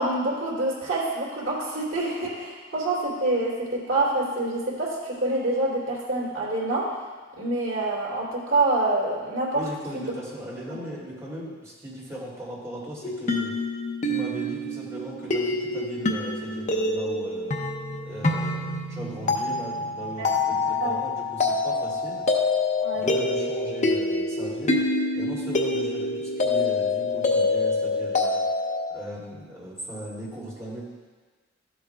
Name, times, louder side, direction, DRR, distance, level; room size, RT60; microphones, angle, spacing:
voice 1, 0.0-6.9 7.4-9.6 9.9-10.1 10.7-10.8 20.2-20.4 20.8-21.0 22.8-23.1, right 2 dB, 80° right, -6 dB, 3.0 m, -26 dB
voice 2, 9.5-13.5 14.0-17.5 18.0-22.3 22.9-24.8 25.1-28.4 28.9-30.8, right 1 dB, 15° right, -7 dB, 2.7 m, -38 dB
sound 1, 13.0-28.9, left 2 dB, 40° left, 0.7 m, -26 dB
13.0 x 8.1 x 2.3 m, 1.4 s
head